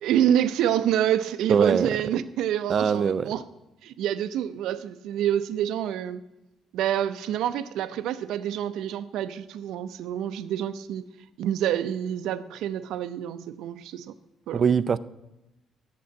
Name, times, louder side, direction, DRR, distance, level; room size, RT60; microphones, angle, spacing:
voice 1, 0.0-3.4 3.8-6.2 6.7-11.0 11.4-14.1 14.5-14.6, right 10 dB, 90° right, 0.6 m, -27 dB
voice 2, 1.5-1.9 2.7-3.3 14.5-15.0, right 6 dB, 35° right, 0.4 m, -22 dB
8.6 x 7.6 x 8.4 m
cardioid pair, 150°, 0 cm